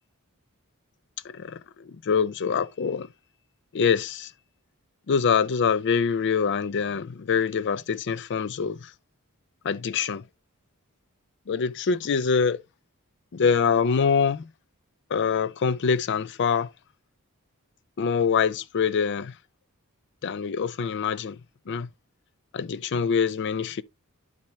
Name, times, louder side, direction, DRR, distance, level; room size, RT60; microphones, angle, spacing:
voice 1, 1.3-3.1 3.7-4.3 5.1-8.9 9.6-10.2 11.5-12.6 13.3-14.4 15.1-16.7 18.0-19.3 20.2-21.4 21.7-21.9 22.5-23.8, left 6 dB, 55° left, 0.4 m, -25 dB
12.0 x 4.3 x 3.0 m
head